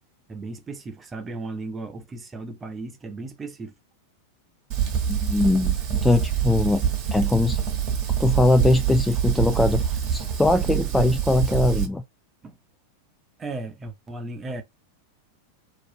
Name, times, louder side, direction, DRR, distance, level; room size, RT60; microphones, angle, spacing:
voice 1, 0.3-3.7 12.4-12.6 13.4-14.6, right 2 dB, 20° right, 0.7 m, -35 dB
Fire, 4.7-11.9, right 9 dB, 40° right, 1.0 m, -25 dB
voice 2, 5.1-6.8 7.1-7.6 8.2-12.0, left 2 dB, 5° left, 0.3 m, -21 dB
2.6 x 2.4 x 3.6 m
figure-of-eight pair, 90°, 0 cm